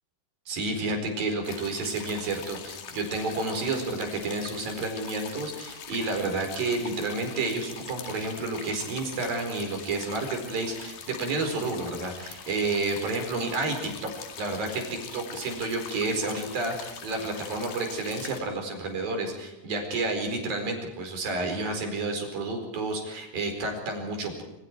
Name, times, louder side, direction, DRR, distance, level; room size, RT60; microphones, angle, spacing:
voice 1, 0.5-14.1 14.4-24.4, right 3 dB, 85° right, 3 dB, 6.5 m, -30 dB
sound 1, 1.4-18.4, left 7 dB, 85° left, 4.0 m, -42 dB
27.0 x 25.0 x 4.7 m, 0.94 s
omnidirectional pair, 4.0 m